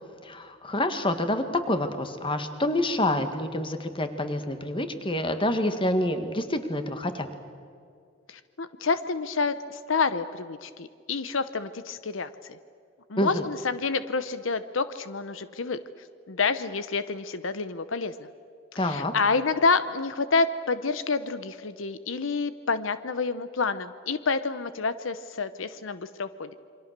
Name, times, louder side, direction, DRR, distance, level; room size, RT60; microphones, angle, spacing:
voice 1, 0.2-7.3 13.2-13.4 18.8-19.1, left 1 dB, 25° left, 8 dB, 1.8 m, -27 dB
voice 2, 8.3-12.6 13.1-15.8 16.3-18.3 18.7-26.5, left 4 dB, 85° left, 13 dB, 0.9 m, -28 dB
28.5 x 24.0 x 6.8 m, 2.3 s
head